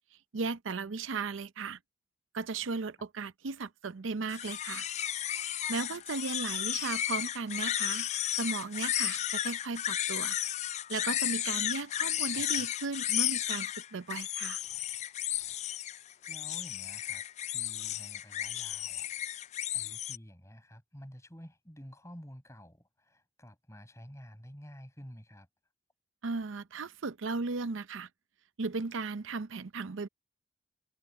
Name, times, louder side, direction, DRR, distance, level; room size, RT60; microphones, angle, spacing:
voice 1, 0.3-1.8 2.3-4.9 5.7-8.1 8.4-10.4 10.9-14.6 26.2-28.1 28.6-30.1, right 4 dB, 85° right, 0.6 m, -36 dB
sound 1, 4.3-20.2, left 12 dB, 35° left, 0.3 m, -33 dB
voice 2, 12.3-12.7 16.3-19.1 19.7-25.5, equal, 15° left, 6.2 m, -50 dB
head